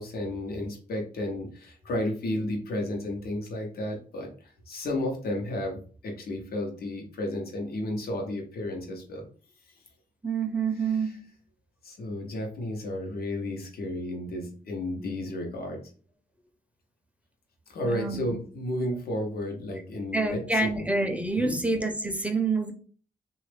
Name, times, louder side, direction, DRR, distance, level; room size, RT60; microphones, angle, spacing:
voice 1, 0.0-5.8 6.0-9.2 10.7-11.2 11.8-15.8 17.7-20.8 21.4-21.6, left 1 dB, 85° left, 2 dB, 0.8 m, -33 dB
voice 2, 10.2-11.2 17.8-18.3 20.1-22.7, right 3 dB, 10° right, 3 dB, 0.5 m, -27 dB
3.0 x 2.3 x 3.3 m, 0.42 s
wide cardioid pair, 95°, 15 cm